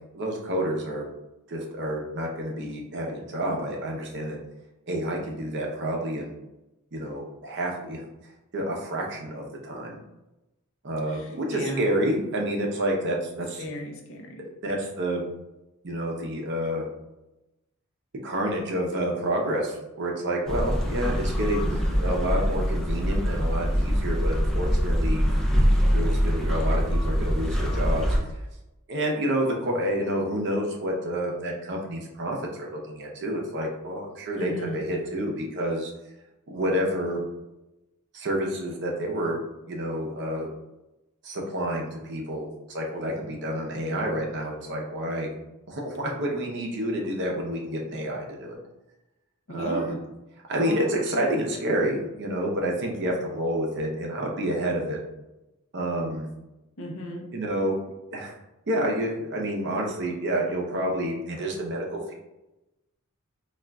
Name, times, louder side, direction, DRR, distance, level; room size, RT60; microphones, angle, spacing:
voice 1, 0.1-1.1 1.5-4.4 4.9-6.4 6.9-8.0 8.5-10.0 10.8-13.6 14.6-15.3 15.8-16.8 18.2-25.3 25.9-28.1 28.9-35.9 36.5-37.2 38.1-39.4 39.7-40.5 41.2-45.3 45.7-48.6 49.5-50.0 50.5-55.0 55.7-56.3 57.3-58.3 58.7-62.1, right 1 dB, 50° right, -1 dB, 0.6 m, -29 dB
voice 2, 11.1-11.8 13.6-14.5 21.3-21.9 34.4-34.8 49.5-50.0 50.5-51.3 56.8-57.3, equal, 60° left, 2 dB, 0.6 m, -36 dB
sound 1, 20.5-28.2, equal, ahead, 0.4 m, -24 dB
5.0 x 2.4 x 2.2 m, 0.97 s
head